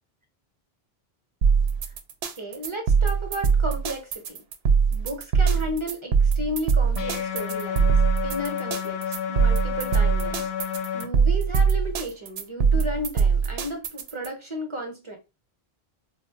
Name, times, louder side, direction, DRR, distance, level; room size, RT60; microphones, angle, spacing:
sound 1, 1.4-14.3, right 6 dB, 75° right, 0.8 m, -22 dB
voice 1, 2.4-4.4 4.9-7.9 8.2-15.2, equal, 30° right, 0.7 m, -34 dB
sound 2, 7.0-11.1, left 8 dB, 75° left, 1.0 m, -30 dB
4.0 x 2.1 x 2.8 m
omnidirectional pair, 1.1 m